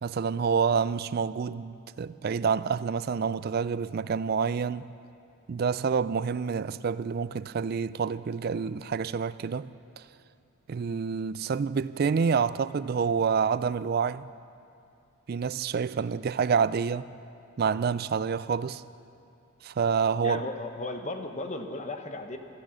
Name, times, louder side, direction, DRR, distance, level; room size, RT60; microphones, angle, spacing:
voice 1, 0.0-4.9 5.5-9.7 10.7-14.3 15.3-17.1 17.6-18.8 19.6-20.5, right 6 dB, 45° right, 0.3 m, -28 dB
voice 2, 20.2-22.4, left 2 dB, 35° left, 0.9 m, -35 dB
16.5 x 13.0 x 6.3 m
head